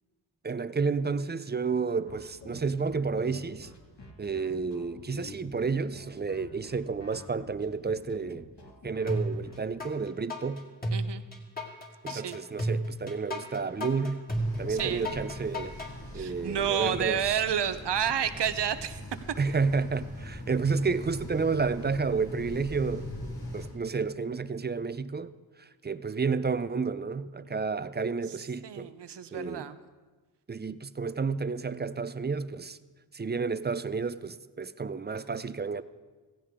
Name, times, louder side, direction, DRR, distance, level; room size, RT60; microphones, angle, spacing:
voice 1, 0.4-3.7 4.2-8.5 8.8-10.6 12.0-14.2 14.6-15.8 16.1-17.4 19.4-25.3 25.6-28.9 29.3-29.7 30.5-32.8 33.1-35.8, right 4 dB, 25° right, 0.5 m, -31 dB
sound 1, 2.0-9.6, left 2 dB, 85° left, 2.3 m, -48 dB
sound 2, 9.1-9.9 10.3-15.9, equal, 20° left, 2.2 m, -32 dB
voice 2, 10.9-11.2 12.1-12.4 14.7-15.1 16.1-19.0 28.6-29.8, right 8 dB, 80° right, 0.8 m, -30 dB
sound 3, 14.3-23.7, left 1 dB, 65° left, 4.3 m, -41 dB
16.0 x 15.5 x 3.7 m
wide cardioid pair, 80°, 41 cm